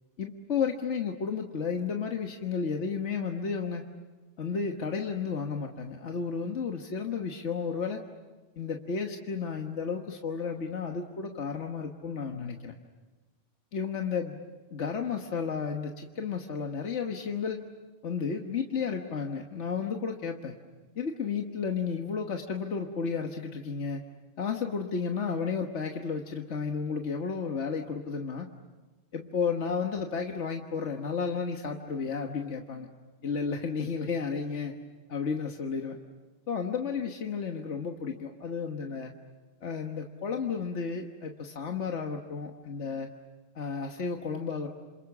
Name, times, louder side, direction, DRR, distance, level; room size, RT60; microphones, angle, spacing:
voice 1, 0.2-3.9 4.4-8.0 8.6-12.8 13.7-14.4 14.7-17.6 18.0-20.5 21.0-24.0 24.4-28.5 29.1-32.9 33.2-34.7 35.1-36.0 36.5-39.1 39.6-43.1 43.6-44.7, left 5 dB, 80° left, 3 dB, 1.6 m, -32 dB
27.5 x 27.0 x 7.2 m, 1.3 s
omnidirectional pair, 1.2 m